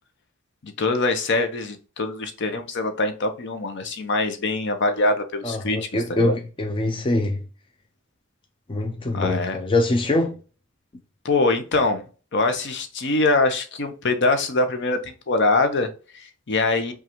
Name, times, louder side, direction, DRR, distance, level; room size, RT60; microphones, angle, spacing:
voice 1, 0.6-6.3 9.1-9.6 11.2-12.0 12.3-16.9, left 2 dB, 60° left, 0.7 m, -23 dB
voice 2, 5.4-7.4 8.7-10.4, left 2 dB, 25° left, 0.4 m, -23 dB
5.4 x 2.4 x 3.0 m
head